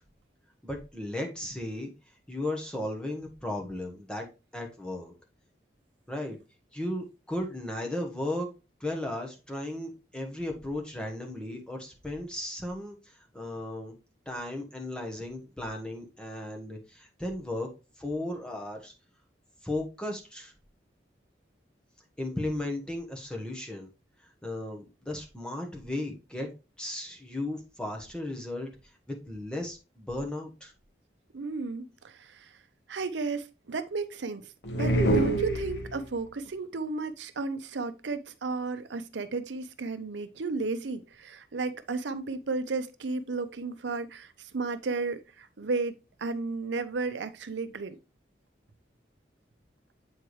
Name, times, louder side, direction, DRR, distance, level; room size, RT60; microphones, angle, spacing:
voice 1, 0.6-1.9 2.3-4.3 4.5-5.1 6.1-6.4 6.7-8.5 8.8-14.0 14.3-17.7 18.0-18.9 19.6-20.5 22.2-23.9 24.4-26.5 26.8-28.7 29.1-30.7, left 1 dB, 5° left, 1.1 m, -35 dB
voice 2, 31.3-32.6 32.9-48.0, right 3 dB, 80° right, 0.6 m, -33 dB
sound 1, 34.6-36.2, right 1 dB, 70° left, 1.3 m, -26 dB
8.0 x 4.6 x 3.1 m
head